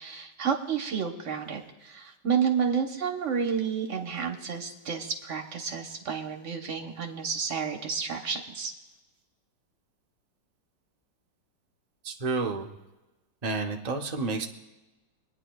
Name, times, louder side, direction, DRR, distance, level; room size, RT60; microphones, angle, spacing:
voice 1, 0.0-8.7, right 6 dB, 45° right, 3 dB, 1.3 m, -30 dB
voice 2, 12.0-12.7 13.4-14.5, right 3 dB, 85° right, 2 dB, 0.3 m, -30 dB
26.0 x 9.6 x 2.3 m, 1.1 s
omnidirectional pair, 2.0 m